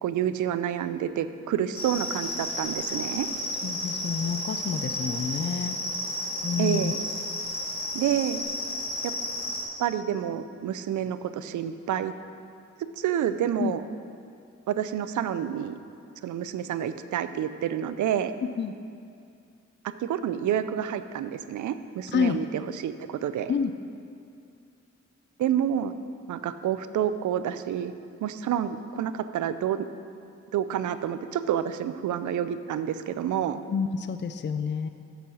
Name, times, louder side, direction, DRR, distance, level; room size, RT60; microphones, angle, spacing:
voice 1, 0.0-3.3 6.6-7.0 7.9-8.4 9.0-9.1 9.8-12.1 13.0-13.8 14.7-15.8 16.2-18.3 20.0-23.5 25.4-25.9 26.3-27.9 28.2-29.9 30.5-33.6, right 10 dB, 75° right, 12 dB, 0.5 m, -28 dB
sound 1, 1.7-9.6, left 1 dB, 70° left, 2.0 m, -32 dB
voice 2, 3.6-5.8 6.4-6.9 13.6-13.7 18.6-18.7 22.1-22.4 23.5-23.7 33.7-34.9, left 6 dB, 35° left, 9 dB, 0.5 m, -28 dB
7.9 x 6.8 x 6.3 m, 2.4 s
supercardioid pair, 50°, 30 cm